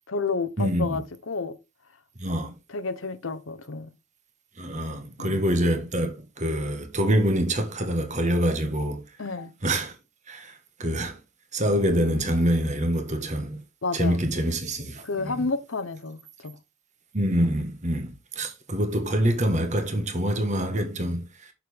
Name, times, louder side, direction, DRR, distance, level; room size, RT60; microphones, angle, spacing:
voice 1, 0.1-1.6 2.7-3.9 5.2-5.4 9.2-9.5 13.8-14.2 15.0-16.6, left 4 dB, 80° left, 0.9 m, -30 dB
voice 2, 0.6-1.0 2.2-2.5 4.6-9.0 9.6-9.9 10.3-10.5 10.8-11.2 11.5-13.6 13.9-15.4 17.1-21.2, right 1 dB, 35° right, 1.5 m, -25 dB
6.8 x 6.5 x 3.5 m
head